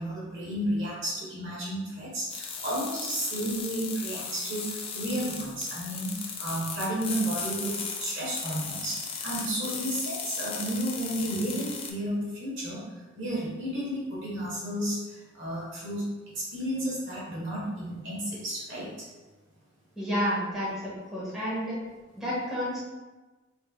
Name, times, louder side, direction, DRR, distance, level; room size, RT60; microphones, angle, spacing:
voice 1, 0.0-12.8 13.1-16.1 16.3-19.1, right 1 dB, 65° right, -6 dB, 1.3 m, -32 dB
sound 1, 2.3-11.9, left 5 dB, 30° left, 0.4 m, -36 dB
voice 2, 20.0-21.8 22.2-22.8, equal, 5° right, -8 dB, 0.9 m, -30 dB
3.4 x 3.3 x 2.3 m, 1.2 s
head